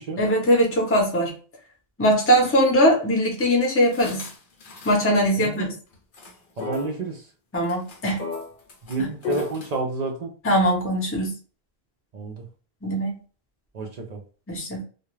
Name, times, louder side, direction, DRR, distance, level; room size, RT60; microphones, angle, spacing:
voice 1, 0.2-1.3 2.0-4.3 4.8-5.7 7.5-8.2 10.4-11.3 12.8-13.1 14.5-14.8, equal, 15° left, -1 dB, 0.6 m, -21 dB
sound 1, 3.9-5.0 5.3-5.4 5.9-6.3 6.6-7.0 7.7-9.7, left 5 dB, 55° left, 0.7 m, -34 dB
voice 2, 6.6-7.2 8.8-10.3 12.1-12.4 13.7-14.2, right 4 dB, 55° right, 3 dB, 0.5 m, -30 dB
2.3 x 2.1 x 3.0 m, 0.38 s
omnidirectional pair, 1.1 m